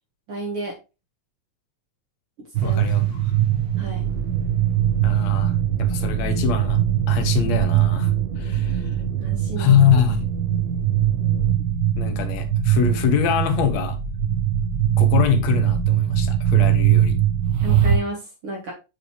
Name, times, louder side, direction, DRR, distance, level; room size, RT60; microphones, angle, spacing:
voice 1, 0.3-0.7 2.4-2.8 3.8-4.1 9.2-9.8 17.6-18.7, right 2 dB, 50° right, 1.9 m, -32 dB
sound 1, 2.5-18.0, right 10 dB, 65° right, 1.0 m, -21 dB
voice 2, 2.6-3.2 5.0-6.8 7.1-9.0 9.6-10.3 12.0-14.0 15.0-17.2, left 10 dB, 70° left, 1.8 m, -23 dB
sound 2, 3.7-11.5, right 11 dB, 90° right, 2.2 m, -35 dB
6.5 x 5.1 x 3.2 m
omnidirectional pair, 3.6 m